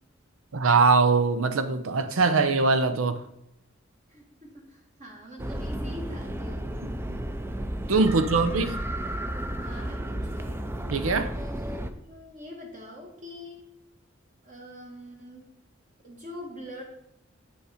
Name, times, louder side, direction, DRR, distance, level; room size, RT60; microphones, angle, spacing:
voice 1, 0.5-3.2 7.0-7.2 7.9-8.7 10.9-11.3, right 4 dB, 90° right, 0.7 m, -22 dB
voice 2, 4.1-6.8 8.1-8.4 9.6-10.7 11.4-13.7 14.4-15.5 16.0-16.8, left 1 dB, 40° right, 1.5 m, -44 dB
sound 1, 5.4-11.9, right 1 dB, 10° right, 0.5 m, -33 dB
8.2 x 5.3 x 4.9 m
head